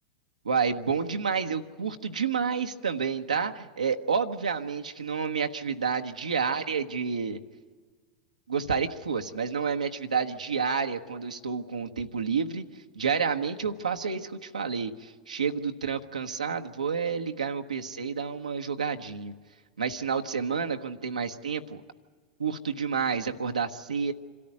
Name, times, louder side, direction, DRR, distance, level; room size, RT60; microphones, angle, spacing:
voice 1, 0.4-7.4 8.5-12.7 12.9-19.3 19.8-21.8 22.4-24.1, right 6 dB, 90° right, 4 dB, 1.1 m, -29 dB
26.0 x 13.5 x 9.7 m, 1.5 s
hypercardioid pair, 100°, 4 cm